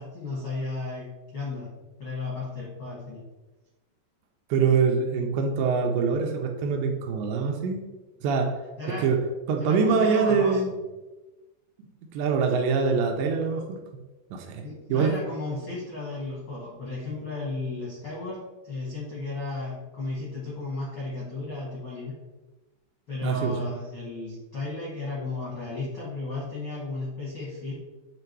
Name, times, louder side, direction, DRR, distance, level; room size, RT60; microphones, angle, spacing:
voice 1, 0.0-1.7 2.0-3.2 8.8-9.1 9.6-10.7 14.6-22.2 23.1-27.7, left 3 dB, 80° left, -6 dB, 1.1 m, -34 dB
voice 2, 4.5-7.8 8.2-8.6 9.0-9.2 9.5-10.7 12.1-13.8 14.3-14.6 14.9-15.1 23.2-23.5, right 5 dB, 80° right, 3 dB, 2.7 m, -24 dB
8.6 x 3.0 x 4.5 m, 1.1 s
omnidirectional pair, 5.3 m